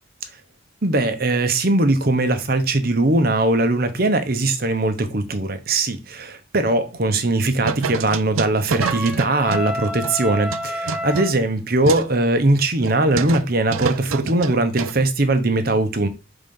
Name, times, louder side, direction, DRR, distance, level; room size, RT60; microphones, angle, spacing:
voice 1, 0.8-16.1, right 2 dB, 45° right, 0.9 m, -20 dB
microwave popcorn, 6.9-7.3 7.6-10.1 10.5-12.1 12.5-12.6 12.8-13.4 13.7-15.0, right 6 dB, 90° right, 0.5 m, -28 dB
Trumpet, 8.8-11.3, equal, 5° right, 0.8 m, -29 dB
5.6 x 4.0 x 5.3 m
head